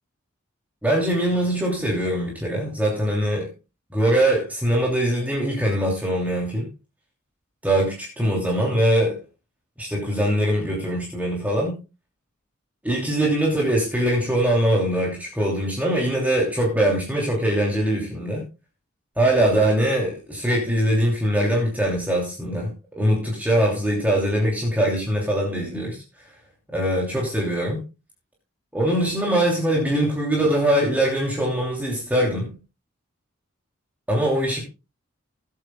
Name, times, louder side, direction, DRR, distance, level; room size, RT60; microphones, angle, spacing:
voice 1, 0.8-3.5 3.9-6.7 7.6-9.2 9.8-11.8 12.8-18.4 19.2-26.0 26.7-27.8 28.7-32.6 34.1-34.7, right 1 dB, 5° right, 2.9 m, -22 dB
19.0 x 8.4 x 2.3 m
head